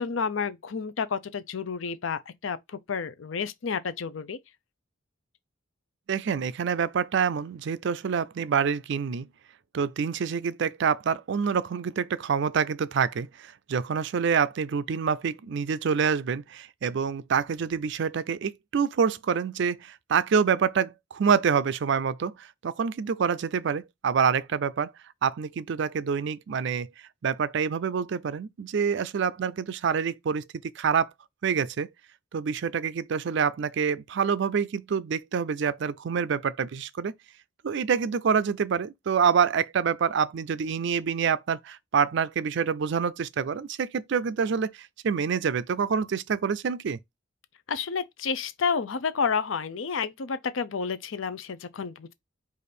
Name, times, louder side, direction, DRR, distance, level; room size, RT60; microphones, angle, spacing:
voice 1, 0.0-2.6 2.9-4.4 47.7-52.1, left 5 dB, 75° left, 0.6 m, -30 dB
voice 2, 6.1-9.3 9.7-24.9 25.2-26.9 27.2-30.4 30.8-31.1 31.4-31.9 32.3-37.1 37.6-47.0, right 6 dB, 60° right, 0.4 m, -26 dB
5.0 x 2.5 x 4.2 m
head